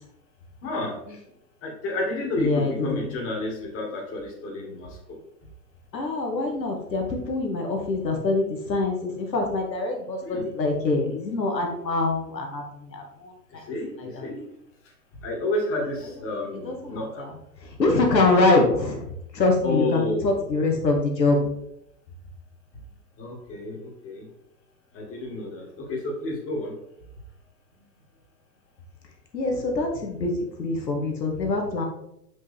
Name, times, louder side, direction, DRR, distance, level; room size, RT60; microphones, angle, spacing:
voice 1, 0.6-1.0 1.6-5.2 10.2-10.5 13.7-14.5 15.2-17.2 18.1-18.5 19.6-20.4 23.2-24.2 24.9-26.7, left 2 dB, 25° left, -2 dB, 2.2 m, -30 dB
voice 2, 2.4-3.1 5.9-12.6 12.9-13.6 14.0-14.3 16.6-17.3 17.8-19.1 19.3-21.4 29.3-31.8, left 3 dB, 85° left, 1 dB, 1.7 m, -24 dB
5.7 x 5.3 x 3.4 m, 0.78 s
hypercardioid pair, 115°, 49 cm